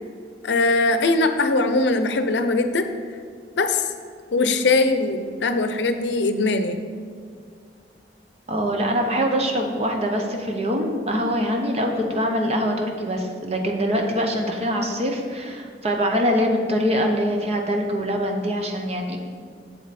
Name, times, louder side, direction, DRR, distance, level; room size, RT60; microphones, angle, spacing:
voice 1, 0.4-2.9 3.6-3.9 4.3-6.8, left 3 dB, 75° left, 8 dB, 0.6 m, -21 dB
voice 2, 8.5-19.2, equal, 35° right, 2 dB, 1.0 m, -23 dB
7.9 x 7.5 x 4.2 m, 2.1 s
head